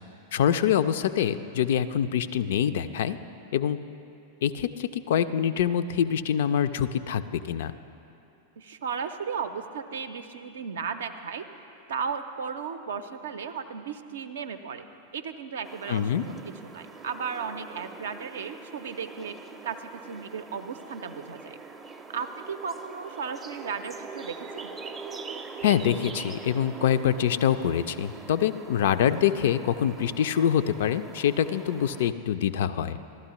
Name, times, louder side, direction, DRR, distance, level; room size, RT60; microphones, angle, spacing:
voice 1, 0.3-3.2 3.5-3.8 4.4-7.7 15.9-16.2 25.6-33.1, left 9 dB, 55° left, 12 dB, 0.3 m, -25 dB
voice 2, 8.6-11.5 11.9-14.9 15.1-19.4 19.6-21.6 22.1-24.7, right 6 dB, 65° right, 9 dB, 0.5 m, -35 dB
sound 1, 15.6-32.1, right 4 dB, 20° right, 0.6 m, -43 dB
14.5 x 12.5 x 2.9 m, 2.8 s
figure-of-eight pair, 90°, 0 cm